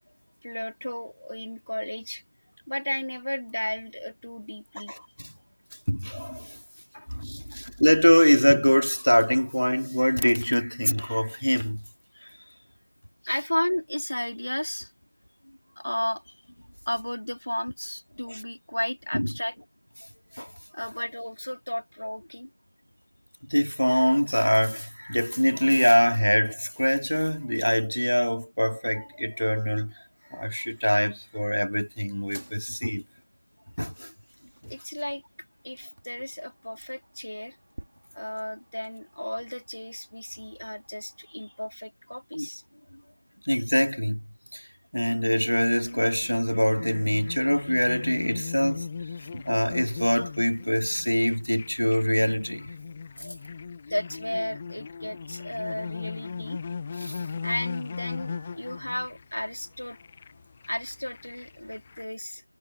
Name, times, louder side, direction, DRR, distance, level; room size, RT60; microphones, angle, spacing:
voice 1, 0.4-2.2 2.7-4.9 6.9-7.1 13.3-14.9 15.8-16.4 16.9-19.5 20.7-22.5 34.7-35.2 35.6-37.6 38.1-42.6 53.9-56.6 57.4-60.0 60.7-62.4, left 1 dB, 50° left, 3.7 m, -33 dB
voice 2, 4.9-5.3 5.9-6.6 7.1-11.8 12.2-12.3 19.1-19.3 20.4-20.5 23.4-29.9 30.3-33.0 33.8-34.1 34.6-34.7 42.3-42.5 43.4-44.2 44.5-44.7 44.9-48.9 49.3-52.7 53.2-53.3 57.0-57.2, equal, 85° left, 2.7 m, -24 dB
sound 1, 32.2-41.7, right 1 dB, 35° right, 4.3 m, -53 dB
sound 2, 45.4-62.0, left 5 dB, 5° left, 0.4 m, -39 dB
figure-of-eight pair, 175°, 0 cm